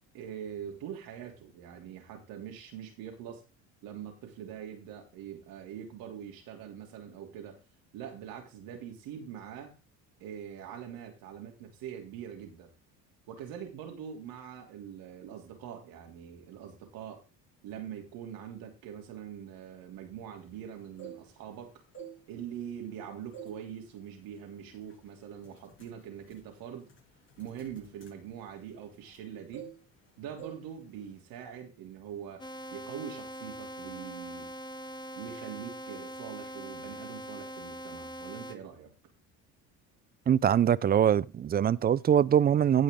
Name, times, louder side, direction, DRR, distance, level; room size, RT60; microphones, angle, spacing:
voice 1, 0.1-3.4 3.8-7.6 7.9-9.7 10.2-12.7 13.3-17.2 17.6-21.7 22.3-26.9 27.4-29.7 30.2-34.5 35.1-38.9, right 9 dB, 70° right, 3.1 m, -43 dB
sound 1, 20.8-21.5 21.9-22.9 23.3-23.7 24.0-24.3 24.9-25.1 25.4-29.2 29.5-30.1 30.4-30.7 30.9-31.2, right 7 dB, 35° left, 6.7 m, -48 dB
sound 2, 32.4-38.6, right 1 dB, 10° left, 1.3 m, -42 dB
voice 2, 40.3-42.8, right 9 dB, 25° right, 0.5 m, -23 dB
17.0 x 5.6 x 3.8 m
supercardioid pair, 105°, 36 cm